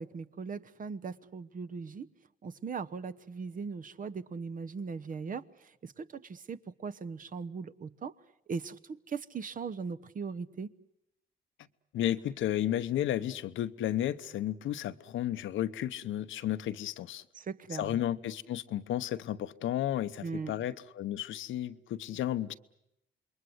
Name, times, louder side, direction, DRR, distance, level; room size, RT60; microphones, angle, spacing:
voice 1, 0.0-2.1 2.4-5.4 5.8-8.1 8.5-8.8 9.1-10.7 17.3-18.0 20.2-20.5, right 5 dB, 45° right, 1.0 m, -39 dB
voice 2, 11.9-17.2 17.7-22.5, left 12 dB, 75° left, 0.9 m, -33 dB
27.5 x 22.5 x 7.9 m
cardioid pair, 90°, 20 cm